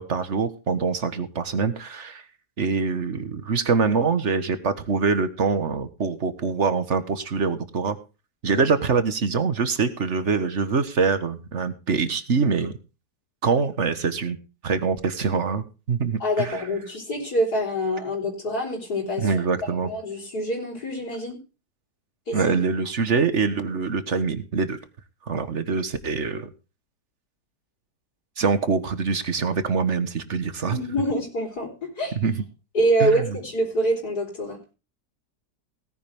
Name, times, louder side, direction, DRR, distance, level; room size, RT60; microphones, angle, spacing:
voice 1, 0.0-2.2 2.6-8.0 8.4-12.7 13.4-14.4 14.6-16.6 19.2-19.9 22.3-24.8 25.2-26.5 28.4-30.8 32.2-32.3 33.0-33.4, right 5 dB, 45° right, 11 dB, 1.5 m, -24 dB
voice 2, 16.2-19.3 19.8-21.4 22.3-22.5 30.7-32.1 32.7-34.6, right 1 dB, 65° left, -3 dB, 4.6 m, -25 dB
17.5 x 10.5 x 3.6 m, 0.32 s
omnidirectional pair, 1.8 m